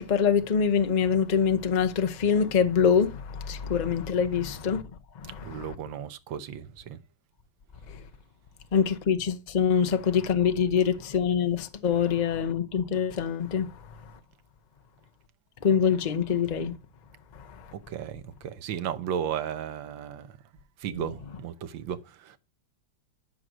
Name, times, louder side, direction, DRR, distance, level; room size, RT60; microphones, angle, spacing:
voice 1, 0.0-4.8 5.1-5.7 7.9-8.0 8.7-13.7 15.6-16.8 17.3-17.7 20.9-21.0, left 7 dB, 80° left, 0.4 m, -25 dB
voice 2, 5.4-7.0 17.7-20.4 20.8-22.4, right 9 dB, 75° right, 1.6 m, -35 dB
12.0 x 6.2 x 6.2 m
omnidirectional pair, 2.1 m